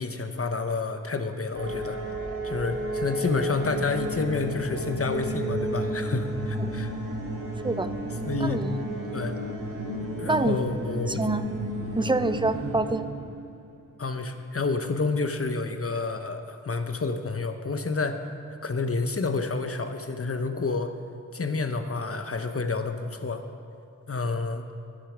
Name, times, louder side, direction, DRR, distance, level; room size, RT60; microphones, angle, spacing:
voice 1, 0.0-2.0 2.4-6.9 8.2-8.7 9.1-9.4 10.2-11.2 14.0-18.2 18.6-20.9 21.3-23.4 24.1-24.6, left 3 dB, 45° left, 8 dB, 1.0 m, -29 dB
sound 1, 1.5-13.7, right 1 dB, 75° right, 2.1 m, -32 dB
voice 2, 8.4-8.7 10.3-10.6 11.1-11.4 12.0-13.0, right 2 dB, 15° right, 11 dB, 0.5 m, -26 dB
13.5 x 10.0 x 5.0 m, 2.5 s
wide cardioid pair, 50°, 32 cm